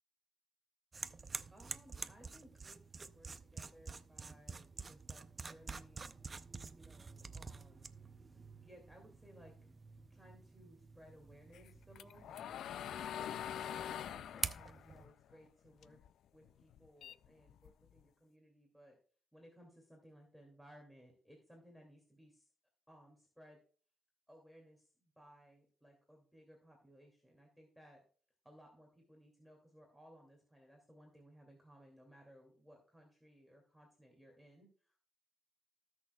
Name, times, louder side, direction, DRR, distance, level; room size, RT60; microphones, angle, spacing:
sound 1, 0.9-15.1, right 4 dB, 30° right, 0.5 m, -48 dB
voice 1, 1.5-6.1 6.7-7.9 8.3-9.5 10.1-12.4 13.1-16.0 16.3-19.0 19.3-22.5 22.9-23.6 24.3-28.0 28.4-35.0, equal, ahead, -1 dB, 2.4 m, -61 dB
sound 2, 11.5-16.1 16.4-18.0, left 10 dB, 80° left, 0.3 m, -45 dB
19.0 x 6.4 x 2.3 m, 0.42 s
cardioid pair, 105°, 0 cm